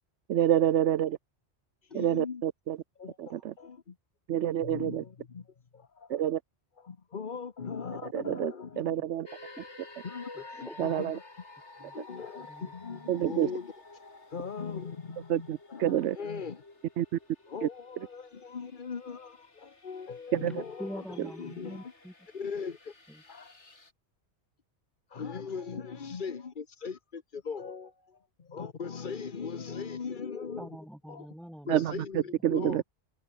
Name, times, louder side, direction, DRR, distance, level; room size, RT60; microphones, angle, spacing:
voice 1, 0.3-1.2 1.9-2.8 3.2-3.5 4.3-5.0 6.1-6.4 8.1-9.3 10.8-11.1 13.1-13.5 15.3-16.2 17.0-17.2 17.6-17.7 20.3-20.6 31.7-32.8, right 11 dB, 90° right, 1.0 m, -28 dB
voice 2, 1.9-2.4 3.0-4.0 4.6-5.5 5.7-6.2 6.8-9.0 10.0-11.1 11.9-13.7 14.3-16.6 17.5-20.9 21.4-21.9 22.3-22.9 23.3-23.5 25.1-30.7 31.1-31.3 31.7-32.8, left 5 dB, 45° left, 1.2 m, -39 dB
sound 1, 9.3-23.9, left 2 dB, 85° left, 4.1 m, -52 dB
voice 3, 10.3-10.8 11.8-12.0 12.4-13.1 18.2-18.3 20.5-20.6 20.8-22.1 23.1-23.2 25.4-26.1 30.6-32.8, equal, ahead, 6.4 m, -46 dB
omnidirectional pair, 1.2 m